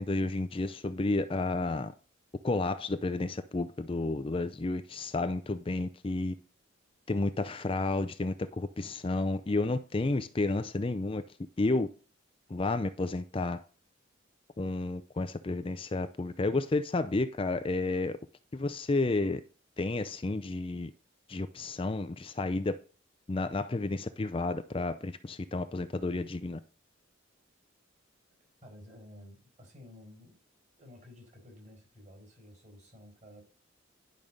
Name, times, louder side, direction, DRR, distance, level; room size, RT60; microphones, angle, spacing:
voice 1, 0.0-1.9 2.4-6.4 7.1-11.2 11.6-11.9 12.5-13.6 14.6-18.2 18.5-19.4 19.8-20.9 21.3-22.8 23.3-26.6, left 2 dB, 25° left, 0.5 m, -31 dB
voice 2, 28.6-30.4 30.7-33.4, left 1 dB, 35° right, 5.1 m, -52 dB
11.0 x 5.4 x 6.4 m
head